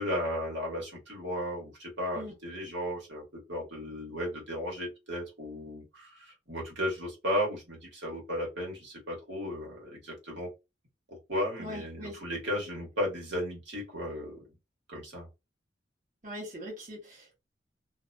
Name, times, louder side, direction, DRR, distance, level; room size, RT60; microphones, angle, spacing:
voice 1, 0.0-10.5 11.1-14.4 14.9-15.3, equal, 70° right, -2 dB, 1.4 m, -35 dB
voice 2, 11.6-12.2 16.2-17.3, equal, 45° right, -4 dB, 1.1 m, -41 dB
2.6 x 2.2 x 2.5 m, 0.25 s
head